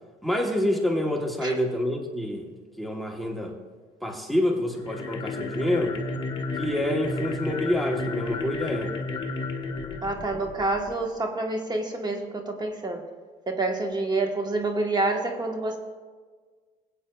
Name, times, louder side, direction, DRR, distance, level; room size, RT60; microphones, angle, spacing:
voice 1, 0.2-2.5 2.8-3.6 4.0-6.0 6.6-8.9, left 1 dB, ahead, 2 dB, 1.0 m, -27 dB
sound 1, 4.7-11.0, left 3 dB, 30° left, 1.2 m, -32 dB
voice 2, 10.0-13.0 13.5-15.8, right 2 dB, 25° right, 3 dB, 1.2 m, -28 dB
21.0 x 8.4 x 2.3 m, 1.5 s
cardioid pair, 110°, 17 cm